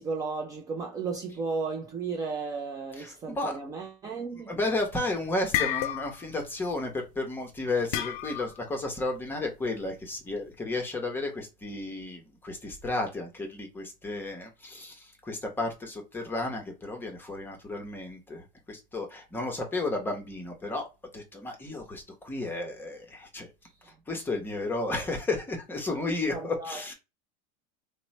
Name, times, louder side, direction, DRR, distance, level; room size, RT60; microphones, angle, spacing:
voice 1, 0.0-4.5 23.7-23.9 26.3-26.8, right 4 dB, 15° right, 0.4 m, -34 dB
voice 2, 3.0-3.6 4.5-20.8 21.1-23.5 24.1-26.9, left 2 dB, 10° left, 0.8 m, -33 dB
sound 1, 4.6-5.0 5.3-6.4 6.6-6.9 7.9-8.6, left 12 dB, 60° left, 0.4 m, -30 dB
3.0 x 2.1 x 4.1 m
supercardioid pair, 155°, 20 cm